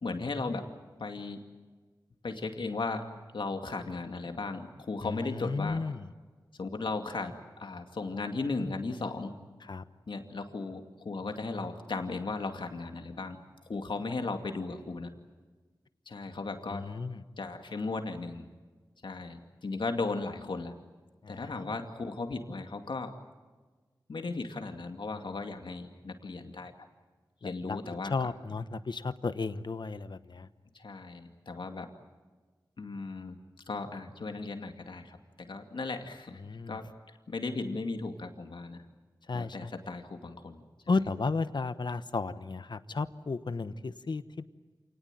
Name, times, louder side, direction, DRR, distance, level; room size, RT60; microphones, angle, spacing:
voice 1, 0.0-0.7 1.0-1.4 2.2-5.8 6.6-9.3 10.1-13.4 13.7-15.1 16.1-16.9 17.4-18.5 19.0-20.7 21.3-23.2 24.1-26.7 27.4-28.3 30.7-31.9 32.8-33.4 33.7-36.4 36.7-38.8 39.3-41.0, left 3 dB, 90° left, 5 dB, 2.4 m, -36 dB
voice 2, 5.0-6.1 9.7-9.8 16.7-17.2 21.2-21.5 27.4-27.8 28.1-30.5 36.4-36.8 39.3-39.7 40.9-44.4, left 4 dB, 70° left, 12 dB, 1.0 m, -33 dB
28.0 x 19.0 x 9.1 m, 1.3 s
wide cardioid pair, 75°, 8 cm